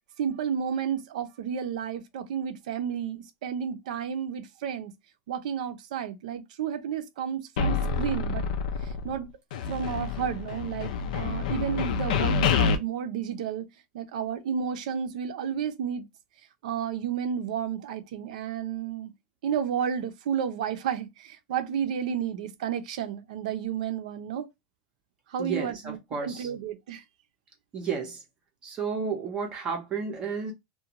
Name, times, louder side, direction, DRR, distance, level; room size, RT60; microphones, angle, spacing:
voice 1, 0.2-4.9 5.3-8.5 8.8-9.3 9.7-13.7 13.9-16.0 16.6-19.1 19.4-24.5 25.3-27.0, right 8 dB, 70° right, 0.5 m, -32 dB
sound 1, 7.6-9.2 9.5-12.8, left 6 dB, 75° left, 0.4 m, -27 dB
voice 2, 25.4-26.5 27.7-28.2 28.6-30.5, right 5 dB, 20° right, 0.5 m, -32 dB
2.5 x 2.2 x 2.8 m
supercardioid pair, 175°, 4 cm